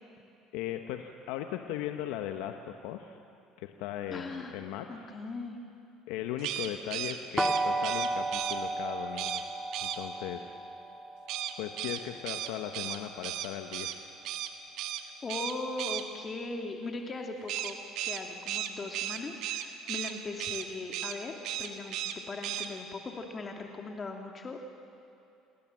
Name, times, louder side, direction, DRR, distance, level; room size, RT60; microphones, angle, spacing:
voice 1, 0.5-3.2 3.6-5.2 6.1-9.4 9.8-10.6 11.6-14.0, left 11 dB, 75° left, 6 dB, 1.1 m, -38 dB
voice 2, 4.1-4.6 4.9-5.6 15.2-17.8 18.0-22.0 22.3-24.7, left 3 dB, 35° left, 2 dB, 2.4 m, -39 dB
sound 1, 6.4-8.6 9.2-9.4 9.7-10.0 11.3-14.0 14.3-14.5 14.8-15.0 15.3-16.0 17.5-20.1 20.4-20.7 20.9-21.2 21.4-22.2 22.4-22.7, right 12 dB, 70° right, 1.6 m, -35 dB
sound 2, 7.4-13.2, right 2 dB, ahead, 2.1 m, -34 dB
28.0 x 19.5 x 7.6 m, 2.6 s
hypercardioid pair, 75°, 0 cm